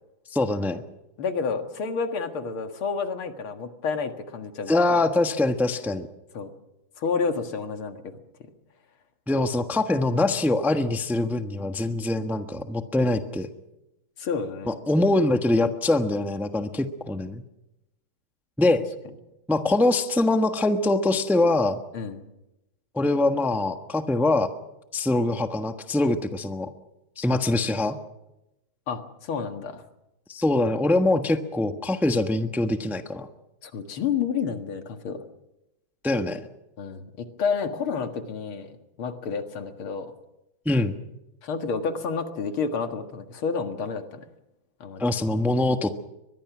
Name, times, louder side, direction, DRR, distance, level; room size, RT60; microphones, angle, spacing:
voice 1, 0.3-0.8 4.7-6.1 9.3-13.5 14.7-17.4 18.6-18.8 19.5-21.8 22.9-24.5 24.9-26.7 27.2-28.0 30.3-33.3 36.0-36.5 40.6-41.0 45.0-45.9, left 2 dB, ahead, 7 dB, 0.8 m, -23 dB
voice 2, 1.2-4.7 6.3-6.5 7.0-8.1 14.2-14.8 21.9-22.2 28.9-29.8 33.6-35.2 36.8-40.1 41.4-44.2 44.8-45.1, left 5 dB, 90° left, 7 dB, 2.6 m, -30 dB
23.5 x 21.0 x 6.1 m, 0.93 s
omnidirectional pair, 2.3 m